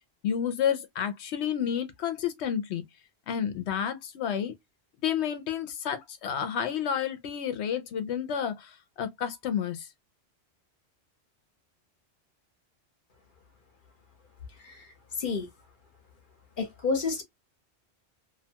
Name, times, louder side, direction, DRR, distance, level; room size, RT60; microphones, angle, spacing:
voice 1, 0.2-2.8 3.3-4.5 5.0-9.9, left 8 dB, 80° left, 0.8 m, -30 dB
voice 2, 16.6-17.2, left 4 dB, 55° left, 0.9 m, -29 dB
2.6 x 2.2 x 2.7 m
omnidirectional pair, 1.1 m